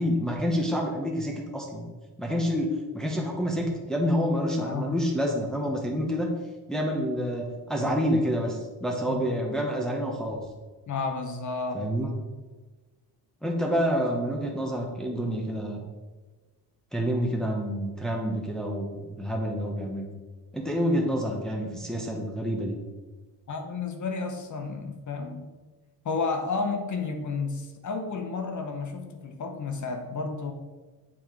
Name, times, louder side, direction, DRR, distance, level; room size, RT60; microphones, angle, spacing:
voice 1, 0.0-1.8 2.2-6.3 6.7-10.4 11.7-12.1 13.4-15.8 16.9-20.1 20.5-22.8, equal, ahead, 0 dB, 0.9 m, -28 dB
voice 2, 4.5-5.0 9.1-9.2 10.9-11.8 23.5-25.5 26.0-30.5, left 4 dB, 50° left, 5 dB, 0.9 m, -32 dB
7.5 x 4.3 x 4.5 m, 1.3 s
cardioid pair, 120°, 39 cm